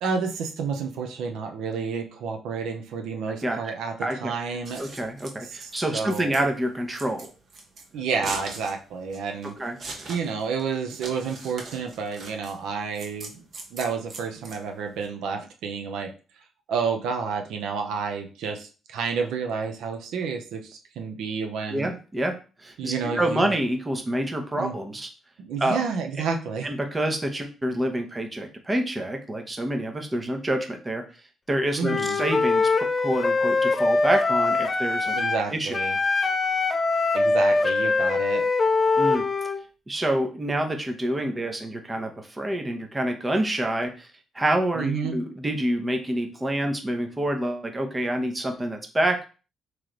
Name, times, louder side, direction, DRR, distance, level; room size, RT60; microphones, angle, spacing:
voice 1, 0.0-3.9 4.2-4.9 5.5-6.4 7.9-9.5 10.1-13.4 13.7-16.1 16.7-21.9 22.8-23.5 24.5-24.8 25.4-26.7 31.8-32.2 35.1-36.0 37.1-38.4 44.7-45.2, right 5 dB, 85° right, 4 dB, 0.6 m, -30 dB
voice 2, 3.3-3.6 4.0-4.3 4.8-7.3 9.6-9.8 21.7-22.3 22.6-25.1 25.6-25.8 26.6-31.0 31.5-35.2 35.5-35.8 39.0-39.2 39.9-44.1 44.3-49.3, right 1 dB, 20° right, 4 dB, 0.8 m, -27 dB
Scissors, 4.5-15.1, right 3 dB, 55° right, 1.2 m, -41 dB
Wind instrument woodwind instrument, 31.8-35.4 35.7-39.6, left 3 dB, 30° left, 0.4 m, -23 dB
3.1 x 3.1 x 3.8 m, 0.35 s
cardioid pair, 90°, 0 cm